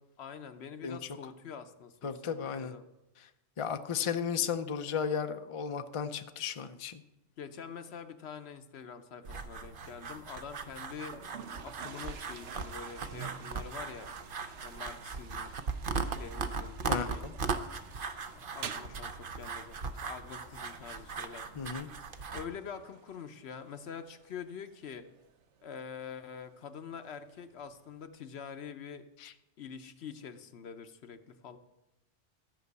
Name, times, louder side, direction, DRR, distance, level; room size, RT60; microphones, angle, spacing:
voice 1, 0.2-2.9 7.4-11.3 11.6-14.1 14.4-15.6 16.1-17.3 18.3-21.5 22.3-25.1 25.6-29.1 29.6-31.6, left 6 dB, 65° left, 10 dB, 1.0 m, -45 dB
voice 2, 2.0-2.7 3.2-3.3 3.6-7.0 16.9-17.3 21.6-21.9 29.2-29.3, left 7 dB, 40° left, 8 dB, 0.5 m, -34 dB
sound 1, 9.2-22.4, right 4 dB, 50° right, 0.9 m, -38 dB
Toilet flush, 11.0-28.1, right 7 dB, 80° right, 1.1 m, -51 dB
14.0 x 5.6 x 8.1 m, 0.95 s
omnidirectional pair, 1.2 m